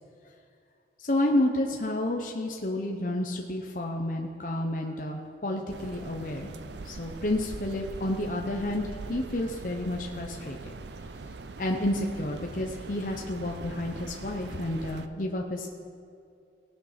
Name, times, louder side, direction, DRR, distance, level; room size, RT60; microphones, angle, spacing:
voice 1, 1.1-6.5 6.8-10.7 11.6-15.8, left 1 dB, 50° left, 1 dB, 0.9 m, -30 dB
sound 1, 5.7-15.1, right 3 dB, 80° right, 0.6 m, -42 dB
18.0 x 6.7 x 5.8 m, 2.4 s
head